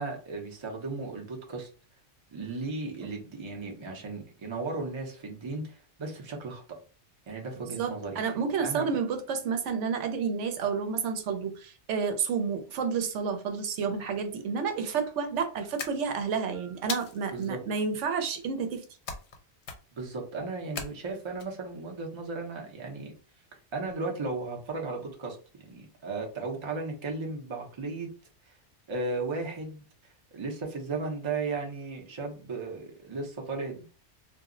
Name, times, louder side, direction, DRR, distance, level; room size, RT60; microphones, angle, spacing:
voice 1, 0.0-1.7 2.3-6.6 7.3-8.2 8.6-8.9 17.3-17.6 19.9-23.1 23.7-25.4 25.7-28.1 28.5-28.6 28.9-29.8 30.3-33.8, right 3 dB, 30° right, 1 dB, 0.6 m, -35 dB
voice 2, 7.7-18.8, right 6 dB, 90° right, 6 dB, 1.0 m, -30 dB
sound 1, 15.8-16.4 16.9-17.5 19.1-19.4 19.6-20.1 20.8-21.4, left 5 dB, 75° left, 0.9 m, -38 dB
2.4 x 2.0 x 3.6 m, 0.36 s
omnidirectional pair, 1.2 m